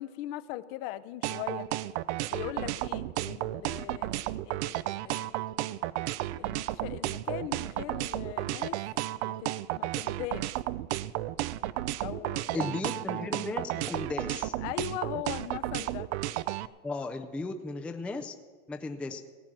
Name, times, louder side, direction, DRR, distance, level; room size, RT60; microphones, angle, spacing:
voice 1, 0.0-1.7 2.3-4.2 4.5-5.3 6.4-8.8 9.2-10.4 12.0-12.7 14.6-16.1, left 14 dB, 55° left, 13 dB, 0.6 m, -40 dB
sound 1, 1.2-16.7, right 15 dB, 75° right, 0.5 m, -32 dB
voice 2, 12.5-14.5 16.8-18.3 18.7-19.2, left 2 dB, 5° left, 5 dB, 0.4 m, -35 dB
17.5 x 9.1 x 6.1 m, 1.5 s
supercardioid pair, 150°, 34 cm